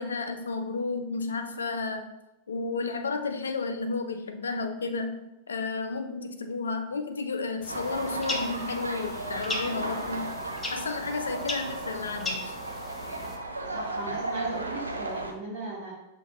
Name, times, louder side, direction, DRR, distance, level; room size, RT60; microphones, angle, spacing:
voice 1, 0.0-2.2 2.5-10.4 10.7-12.5, left 4 dB, 70° left, 7 dB, 0.4 m, -32 dB
sound 1, 7.6-13.4, left 2 dB, 15° left, 0.6 m, -38 dB
sound 2, 7.7-15.3, right 2 dB, 80° right, 0.5 m, -35 dB
voice 2, 13.7-15.9, right 2 dB, 45° right, -7 dB, 1.3 m, -37 dB
6.3 x 2.6 x 2.9 m, 0.92 s
figure-of-eight pair, 90°, 0 cm